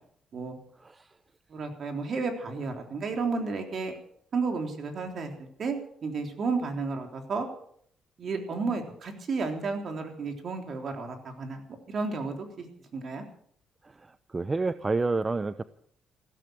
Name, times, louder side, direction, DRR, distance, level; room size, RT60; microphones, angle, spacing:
voice 1, 0.8-1.1 13.8-15.6, right 3 dB, 25° right, 14 dB, 0.6 m, -30 dB
voice 2, 1.5-3.9 4.3-7.5 8.2-11.6 11.9-12.5 12.9-13.2, right 4 dB, 55° right, 4 dB, 3.6 m, -32 dB
16.0 x 13.5 x 6.4 m, 0.64 s
cardioid pair, 90°, 0 cm